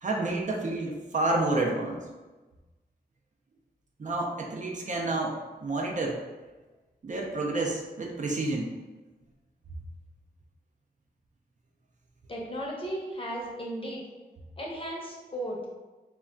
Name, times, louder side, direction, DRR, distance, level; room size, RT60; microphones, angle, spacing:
voice 1, 0.0-2.0 4.0-5.3 5.6-6.2 7.0-8.7, right 2 dB, 50° right, -1 dB, 0.4 m, -29 dB
voice 2, 12.3-14.0 14.6-15.7, equal, 35° left, -3 dB, 0.7 m, -35 dB
2.2 x 2.2 x 3.7 m, 1.2 s
wide cardioid pair, 100°, 17 cm